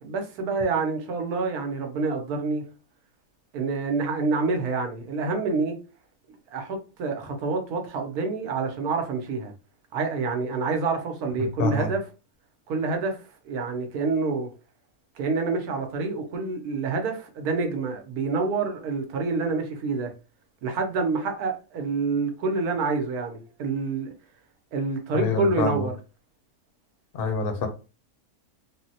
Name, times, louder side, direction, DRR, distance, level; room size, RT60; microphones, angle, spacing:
voice 1, 0.0-2.6 3.5-5.8 6.5-9.5 9.9-12.1 12.7-14.5 15.1-20.1 20.6-24.1 24.7-26.0, right 4 dB, 80° right, 1.2 m, -27 dB
voice 2, 25.1-25.8 27.1-27.7, left 4 dB, 55° left, 0.6 m, -26 dB
3.6 x 2.0 x 2.7 m
omnidirectional pair, 1.6 m